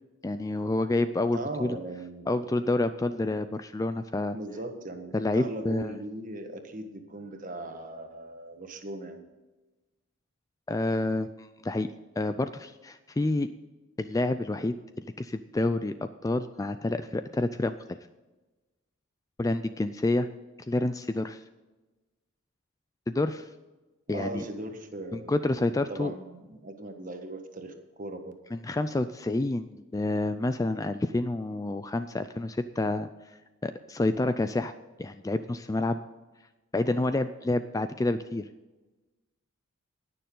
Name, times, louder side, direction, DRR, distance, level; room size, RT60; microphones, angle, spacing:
voice 1, 0.2-1.8 2.3-4.4 5.1-5.9 10.7-11.9 12.2-13.5 14.0-17.8 19.4-20.3 20.7-21.4 23.1-23.5 24.1-24.4 25.1-26.1 28.5-33.1 33.6-34.7 35.0-36.0 36.7-38.5, left 2 dB, 15° left, 11 dB, 0.3 m, -28 dB
voice 2, 1.3-2.6 4.3-9.2 24.1-28.3, right 1 dB, 40° right, 5 dB, 1.4 m, -39 dB
19.5 x 6.8 x 3.8 m, 1.2 s
head